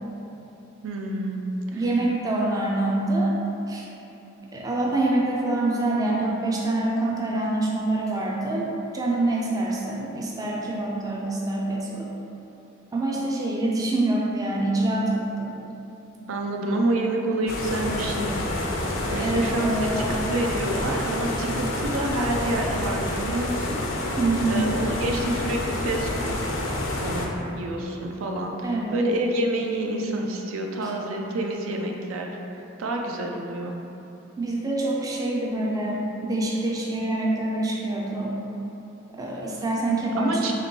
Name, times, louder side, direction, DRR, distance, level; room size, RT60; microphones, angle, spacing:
voice 1, 0.8-1.4 1.7-1.8 16.3-18.5 19.1-19.7 20.0-24.2 24.5-26.6 27.0-32.3 32.6-33.8 40.2-40.5, right 1 dB, 85° right, 2 dB, 0.4 m, -28 dB
voice 2, 1.7-3.3 3.7-3.9 4.5-8.7 8.9-12.1 12.9-15.6 19.2-20.1 24.2-24.7 28.6-29.1 30.8-30.9 34.4-38.4 39.1-40.5, right 2 dB, 20° right, -3 dB, 0.3 m, -26 dB
sound 1, 17.5-27.3, left 1 dB, 70° left, 0.5 m, -28 dB
2.9 x 2.9 x 4.4 m, 2.9 s
head